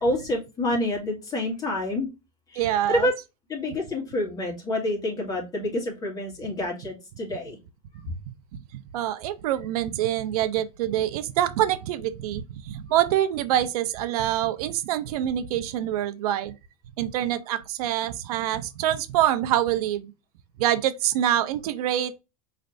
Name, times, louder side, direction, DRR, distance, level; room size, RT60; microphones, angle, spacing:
voice 1, 0.0-2.1 2.5-3.1 3.5-7.6 8.1-8.2, left 1 dB, 20° left, 2.0 m, -28 dB
voice 2, 2.6-3.1 3.6-3.7 8.9-16.5 17.0-20.1 20.6-22.2, right 12 dB, 70° right, 0.6 m, -25 dB
5.0 x 3.3 x 2.5 m
supercardioid pair, 140°, 20 cm